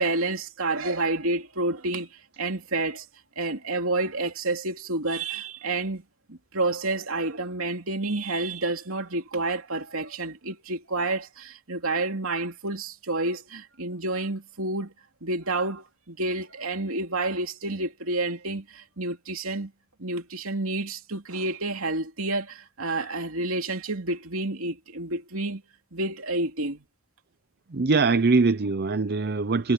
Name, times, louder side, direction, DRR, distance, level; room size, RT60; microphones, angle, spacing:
voice 1, 0.0-2.1 2.4-3.0 3.4-6.0 6.3-14.9 15.2-19.7 20.0-25.6 25.9-26.8, right 2 dB, 70° right, 3.1 m, -29 dB
voice 2, 27.7-29.7, right 4 dB, 45° right, 0.7 m, -22 dB
head